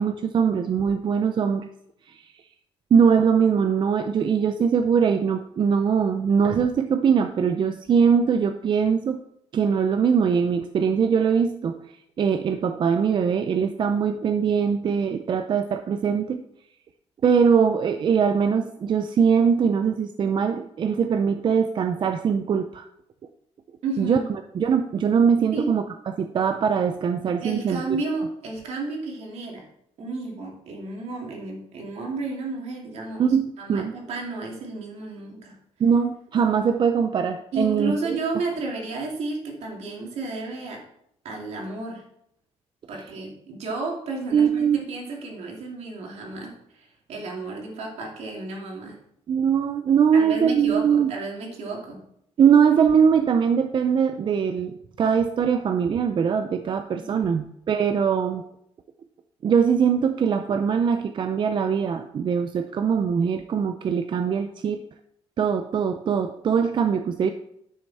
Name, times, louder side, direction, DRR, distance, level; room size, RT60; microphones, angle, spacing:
voice 1, 0.0-1.7 2.1-2.3 2.9-9.2 9.5-11.8 12.2-16.4 17.2-22.9 24.0-24.2 24.6-27.8 33.2-33.9 35.8-37.9 44.3-44.8 49.3-51.1 52.4-58.4 59.4-64.8 65.4-67.3, right 6 dB, 45° right, 7 dB, 0.5 m, -22 dB
voice 2, 23.8-24.3 25.5-25.7 27.4-29.7 30.0-35.6 37.5-40.8 41.2-42.0 42.9-49.0 50.1-52.0 57.0-57.3, right 3 dB, 70° right, 0 dB, 2.6 m, -32 dB
10.0 x 6.5 x 4.2 m, 0.74 s
cardioid pair, 125°, 11 cm